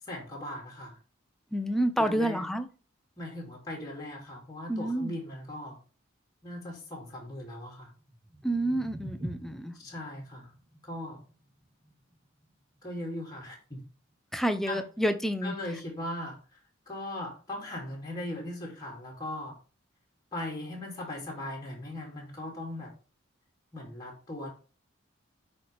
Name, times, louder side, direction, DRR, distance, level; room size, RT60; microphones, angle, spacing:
voice 1, 0.1-1.0 2.0-2.5 3.2-5.8 6.4-7.9 9.7-10.5 10.8-11.2 12.8-13.8 14.7-14.8 15.4-16.6 16.9-19.6 20.3-22.9 23.7-24.5, left 1 dB, 20° left, 2.4 m, -39 dB
voice 2, 1.5-2.7 4.7-5.1 8.4-9.7 14.3-15.5, right 1 dB, ahead, 0.6 m, -29 dB
sound 1, 8.0-14.2, right 1 dB, 15° right, 1.2 m, -47 dB
10.0 x 4.2 x 3.3 m
head